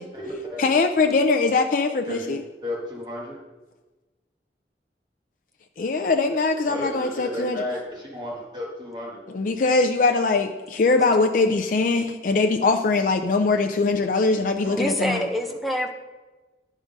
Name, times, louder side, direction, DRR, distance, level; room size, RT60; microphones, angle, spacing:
voice 1, 0.0-0.6 2.1-3.4 6.6-9.2 14.6-14.8 15.1-15.2, left 1 dB, 25° right, -3 dB, 1.4 m, -33 dB
voice 2, 0.6-2.4 5.8-7.6 9.3-15.3, left 3 dB, 45° left, 4 dB, 0.4 m, -22 dB
voice 3, 14.8-15.9, equal, ahead, 1 dB, 0.6 m, -26 dB
10.5 x 3.7 x 5.2 m, 1.2 s
head